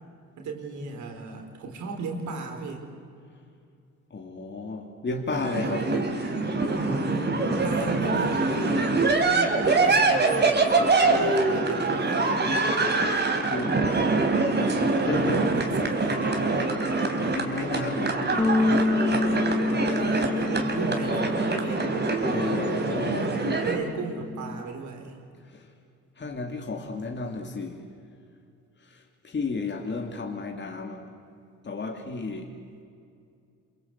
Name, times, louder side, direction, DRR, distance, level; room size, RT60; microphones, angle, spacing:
voice 1, 0.4-2.9 5.5-6.1 6.6-8.8 9.1-10.6 11.0-12.5 15.0-16.6 19.9-21.9 23.5-25.2, right 4 dB, 70° right, 3 dB, 4.6 m, -36 dB
voice 2, 4.1-5.8 13.5-13.9 15.1-15.4 17.3-18.8 22.3-23.4 25.5-25.7 26.2-27.8 28.8-31.0 31.6-32.5, left 3 dB, 35° left, 3 dB, 2.7 m, -33 dB
sound 1, 5.3-23.8, right 3 dB, 35° right, 3.7 m, -24 dB
Bass guitar, 18.4-24.6, left 2 dB, 10° left, 1.2 m, -28 dB
27.5 x 23.5 x 8.3 m, 2.4 s
cardioid pair, 90°, 30 cm